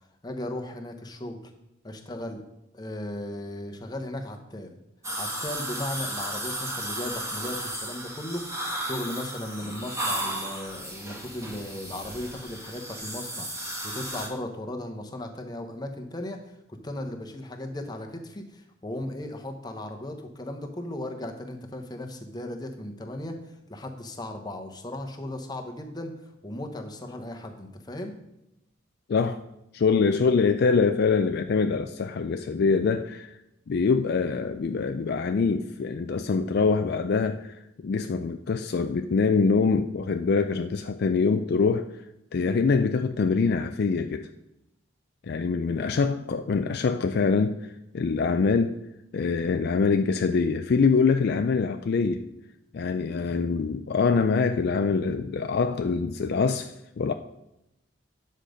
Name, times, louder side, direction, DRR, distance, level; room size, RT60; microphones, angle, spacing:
voice 1, 0.2-1.4 1.8-2.4 2.7-4.8 5.2-28.2, left 1 dB, 20° left, 1.0 m, -36 dB
sound 1, 5.0-14.3, right 1 dB, 15° right, 1.7 m, -34 dB
voice 2, 29.1-29.4 29.7-33.4 33.7-41.9 42.3-44.3 45.3-48.8 49.1-52.3 52.7-57.1, left 4 dB, 50° left, 0.4 m, -24 dB
9.9 x 6.6 x 5.1 m
head